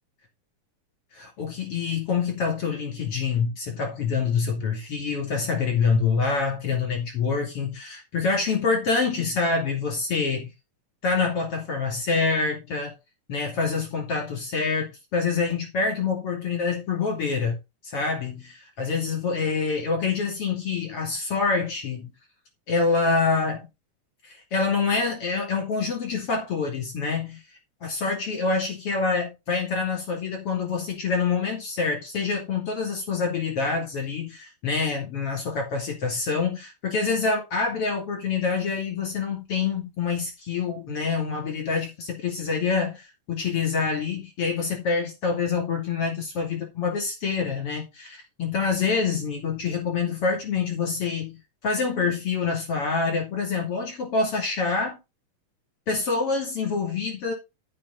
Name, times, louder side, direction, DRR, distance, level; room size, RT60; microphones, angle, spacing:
voice 1, 1.1-10.5 11.0-12.9 13.3-17.6 17.8-22.1 22.7-23.7 24.2-27.4 27.8-55.0 55.9-57.3, left 4 dB, 45° left, 3.7 m, -26 dB
12.5 x 6.1 x 4.0 m
omnidirectional pair, 3.7 m